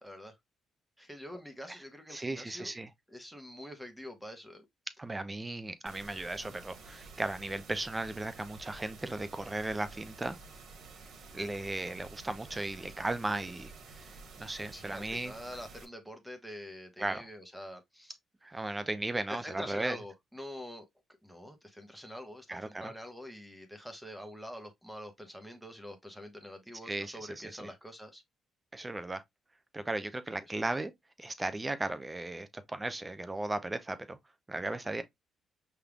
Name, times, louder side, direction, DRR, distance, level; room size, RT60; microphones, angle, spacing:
voice 1, 0.0-0.3 1.0-2.8 3.1-4.6 14.7-18.2 18.5-18.7 19.3-20.9 21.2-28.2, equal, ahead, 1.1 m, -45 dB
voice 2, 2.1-2.9 5.0-10.4 11.3-14.1 14.4-15.3 17.0-17.3 18.5-20.0 22.5-22.9 26.9-27.7 28.7-29.2 29.7-30.9 31.2-34.2 34.5-35.0, right 2 dB, 20° right, 0.7 m, -36 dB
sound 1, 5.9-15.9, right 4 dB, 70° right, 1.5 m, -51 dB
5.5 x 3.5 x 2.3 m
cardioid pair, 90°, 0 cm